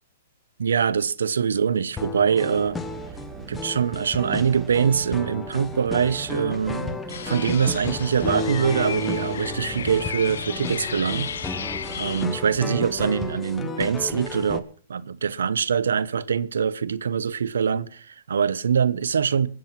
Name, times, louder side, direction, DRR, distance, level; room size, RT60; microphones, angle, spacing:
voice 1, 0.6-2.8 3.5-7.0 7.3-19.5, right 7 dB, 85° right, 0.8 m, -24 dB
sound 1, 1.9-13.8, right 6 dB, 20° right, 1.8 m, -43 dB
sound 2, 2.0-14.6, left 3 dB, 10° left, 1.3 m, -33 dB
sound 3, 7.1-12.3, left 7 dB, 80° left, 0.6 m, -34 dB
22.0 x 7.7 x 5.9 m
hypercardioid pair, 135°, 0 cm